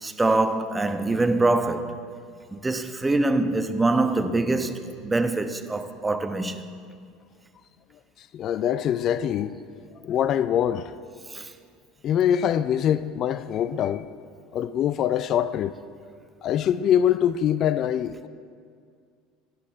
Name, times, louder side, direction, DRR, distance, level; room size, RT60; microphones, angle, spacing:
voice 1, 0.0-2.0 2.5-6.6 11.3-11.5, right 2 dB, 15° right, 1.0 m, -24 dB
voice 2, 8.3-9.5 10.0-10.9 12.0-14.1 14.5-15.7 16.4-18.3, left 9 dB, 50° left, 0.4 m, -24 dB
17.0 x 10.5 x 4.5 m
hypercardioid pair, 70°, 0 cm